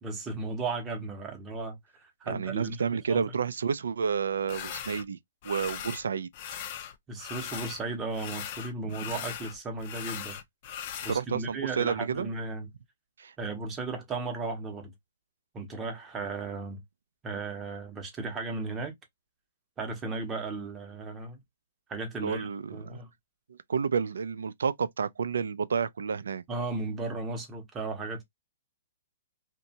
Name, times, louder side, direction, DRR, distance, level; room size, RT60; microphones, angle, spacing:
voice 1, 0.0-2.8 3.1-3.2 7.1-10.4 11.0-12.7 13.4-14.9 15.5-16.8 17.2-18.9 19.8-21.4 21.9-23.1 26.5-28.2, right 3 dB, 15° right, 0.7 m, -35 dB
voice 2, 2.3-5.2 5.4-6.3 11.1-12.3 13.2-13.3 22.2-23.0 23.5-26.4, right 6 dB, 85° right, 0.3 m, -30 dB
sound 1, 4.5-5.0 5.4-6.0 6.3-7.8 8.1-11.2, left 9 dB, 35° left, 0.4 m, -39 dB
2.8 x 2.1 x 2.7 m
hypercardioid pair, 160°, 0 cm